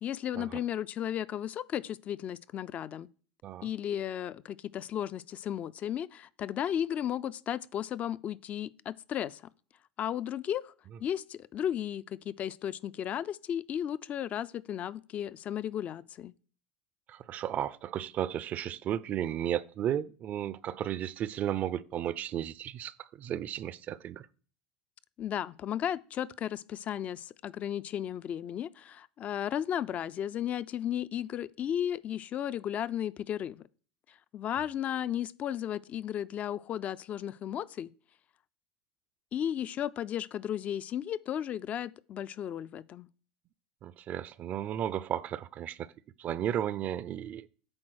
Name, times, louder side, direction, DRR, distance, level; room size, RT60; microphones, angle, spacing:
voice 1, 0.0-3.1 3.6-9.4 10.0-10.7 11.0-16.3 25.2-33.6 34.3-37.9 39.3-43.1, left 10 dB, 40° left, 0.3 m, -34 dB
voice 2, 17.1-24.2 43.8-45.9 46.2-47.5, right 10 dB, 40° right, 0.4 m, -34 dB
8.8 x 3.8 x 6.3 m
supercardioid pair, 110°, 4 cm